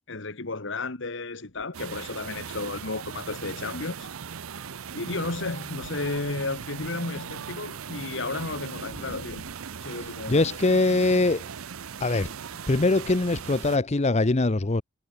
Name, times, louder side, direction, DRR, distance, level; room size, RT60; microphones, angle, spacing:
voice 1, 0.1-4.1 4.9-9.5 9.8-10.6, left 3 dB, 60° left, 1.7 m, -33 dB
sound 1, 1.7-13.8, right 7 dB, 85° right, 0.7 m, -39 dB
voice 2, 10.3-11.5 12.0-12.3 12.7-14.8, left 2 dB, 30° left, 0.7 m, -22 dB
head